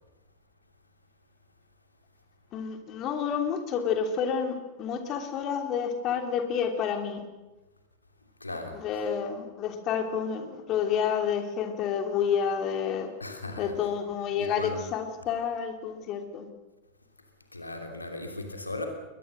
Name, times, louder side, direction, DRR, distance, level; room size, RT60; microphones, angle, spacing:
voice 1, 2.5-7.2 8.7-13.1 13.6-16.5, left 7 dB, 35° left, 6 dB, 3.0 m, -29 dB
voice 2, 8.2-8.8 13.2-13.7 14.4-14.8 17.5-18.9, left 2 dB, 80° left, 4 dB, 2.9 m, -37 dB
22.0 x 20.5 x 6.5 m, 1.1 s
figure-of-eight pair, 90°, 0 cm